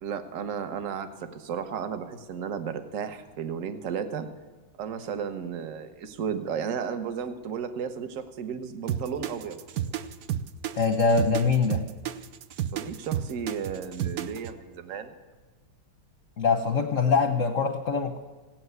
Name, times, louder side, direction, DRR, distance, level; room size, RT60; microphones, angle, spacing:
voice 1, 0.0-4.3 4.8-9.6 12.7-15.1, right 7 dB, 50° right, 9 dB, 1.1 m, -34 dB
sound 1, 8.9-14.5, right 10 dB, 75° right, 0.8 m, -31 dB
voice 2, 10.8-11.8 16.4-18.2, left 4 dB, 55° left, 6 dB, 0.9 m, -23 dB
16.5 x 9.0 x 9.4 m, 1.3 s
omnidirectional pair, 2.3 m